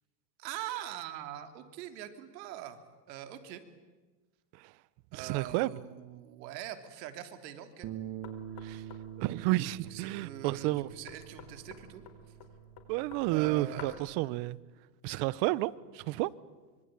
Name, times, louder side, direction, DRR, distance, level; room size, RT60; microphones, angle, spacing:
voice 1, 0.4-2.8 3.1-3.6 5.1-7.9 9.9-12.0 13.3-14.3, right 11 dB, 75° right, 3.2 m, -43 dB
voice 2, 5.1-5.7 8.6-8.8 9.2-10.9 12.9-14.6 15.0-16.3, right 19 dB, 55° right, 1.1 m, -31 dB
Bass guitar, 7.8-14.1, right 10 dB, 35° right, 2.0 m, -46 dB
Knock, 8.2-14.2, left 8 dB, 45° left, 4.5 m, -52 dB
25.0 x 24.5 x 9.0 m
supercardioid pair, 125°, 50 cm